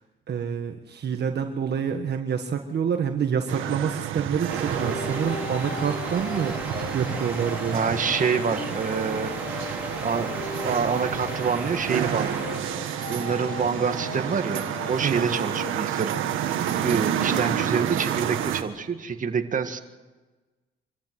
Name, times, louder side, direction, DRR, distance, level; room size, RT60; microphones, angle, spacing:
voice 1, 0.3-6.6 6.9-7.8 15.0-15.2, right 7 dB, 55° right, 5 dB, 1.5 m, -27 dB
sound 1, 3.5-18.6, right 9 dB, 85° right, 1.7 m, -30 dB
sound 2, 4.4-15.7, left 4 dB, 45° left, 3.7 m, -39 dB
sound 3, 4.5-12.6, right 2 dB, 5° right, 4.7 m, -36 dB
voice 2, 7.7-9.3 9.7-12.8 13.1-19.8, right 6 dB, 40° right, 6 dB, 1.8 m, -27 dB
25.5 x 14.5 x 7.6 m, 1.3 s
cardioid pair, 90°, 20 cm